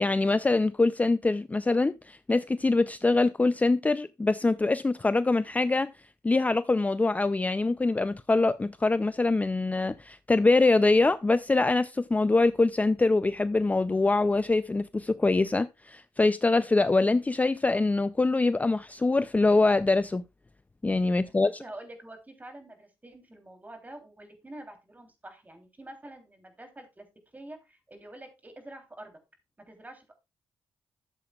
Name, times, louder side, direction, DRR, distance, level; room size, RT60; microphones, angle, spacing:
voice 1, 0.0-5.9 6.2-20.2 20.8-21.5, left 3 dB, 20° left, 0.4 m, -24 dB
voice 2, 21.1-27.1 27.3-29.2 29.7-30.1, right 1 dB, 20° right, 3.2 m, -47 dB
12.5 x 7.6 x 2.3 m
supercardioid pair, 60°, 8 cm